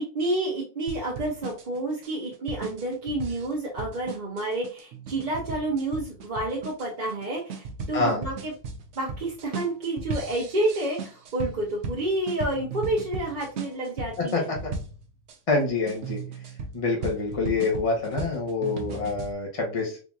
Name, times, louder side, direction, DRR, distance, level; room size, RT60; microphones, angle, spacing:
voice 1, 0.0-8.5 9.0-14.5, right 2 dB, 45° right, -3 dB, 0.8 m, -29 dB
sound 1, 0.9-15.4 15.9-19.3, right 4 dB, 80° right, 1.0 m, -37 dB
voice 2, 15.5-16.2 16.7-20.0, left 3 dB, 30° left, -1 dB, 1.0 m, -26 dB
3.7 x 2.8 x 2.3 m, 0.37 s
omnidirectional pair, 1.2 m